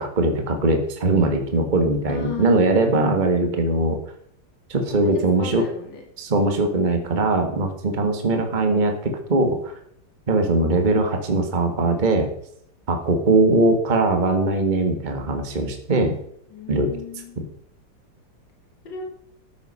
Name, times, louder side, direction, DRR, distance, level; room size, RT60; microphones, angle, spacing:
voice 1, 0.0-4.0 4.7-5.6 6.2-9.7 10.3-12.3 12.9-16.2 16.7-16.9, right 2 dB, 25° right, 5 dB, 1.6 m, -21 dB
voice 2, 2.1-2.8 5.0-6.0 16.5-17.4 18.8-19.1, left 4 dB, 65° left, 0 dB, 3.1 m, -35 dB
13.5 x 8.1 x 5.5 m, 0.71 s
omnidirectional pair, 2.1 m